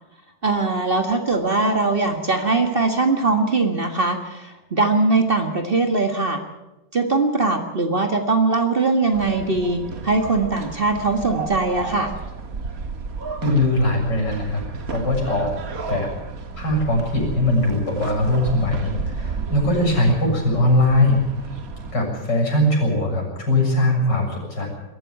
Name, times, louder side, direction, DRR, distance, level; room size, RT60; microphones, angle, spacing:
voice 1, 0.4-6.4 6.9-12.1, right 3 dB, 30° right, 5 dB, 1.8 m, -21 dB
sound 1, 9.1-21.9, right 4 dB, 55° right, 1.9 m, -32 dB
voice 2, 13.4-15.5 15.9-16.1 16.6-21.2 21.5-21.6 21.9-24.7, left 1 dB, 75° left, 0 dB, 7.7 m, -20 dB
22.0 x 13.5 x 9.2 m, 1.0 s
omnidirectional pair, 1.9 m